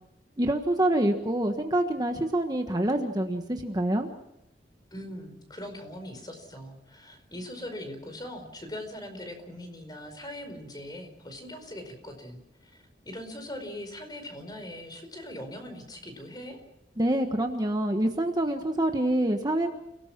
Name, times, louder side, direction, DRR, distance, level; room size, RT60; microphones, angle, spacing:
voice 1, 0.4-4.1 17.0-19.7, right 1 dB, 25° right, 4 dB, 1.4 m, -26 dB
voice 2, 4.9-16.6, left 1 dB, 25° left, 6 dB, 4.9 m, -41 dB
30.0 x 18.5 x 6.0 m, 0.86 s
head